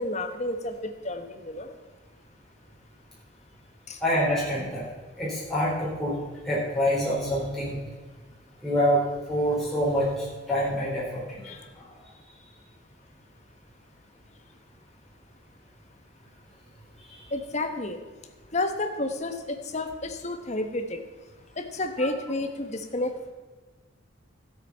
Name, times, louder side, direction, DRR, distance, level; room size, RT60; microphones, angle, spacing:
voice 1, 0.0-1.7 3.9-4.0 11.4-11.6 17.3-18.0 18.5-21.0 21.6-23.3, left 2 dB, 35° left, 6 dB, 1.2 m, -31 dB
voice 2, 4.0-4.8 5.2-6.1 6.4-7.7 8.6-11.4 22.0-22.1, equal, ahead, -8 dB, 4.2 m, -26 dB
13.5 x 8.0 x 5.6 m, 1.4 s
head